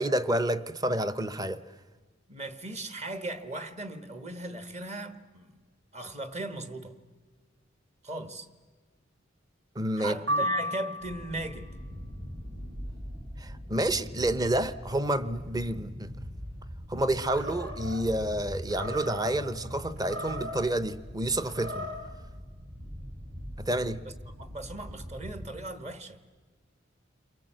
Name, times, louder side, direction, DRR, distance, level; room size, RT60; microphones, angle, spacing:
voice 1, 0.0-1.6 9.8-10.4 13.4-16.1 16.9-21.9 23.6-24.0, right 1 dB, 20° right, 0.7 m, -29 dB
voice 2, 2.3-5.5 5.9-7.0 8.0-8.5 10.0-11.7 24.4-26.2, right 2 dB, 35° right, 1.4 m, -37 dB
sound 1, 10.3-11.5, equal, 70° right, 2.0 m, -31 dB
sound 2, 11.0-25.5, equal, 50° right, 6.6 m, -42 dB
Animal, 17.3-18.0 18.7-19.3 20.0-20.7 21.4-22.1, equal, 85° right, 4.1 m, -39 dB
29.5 x 23.5 x 7.8 m
head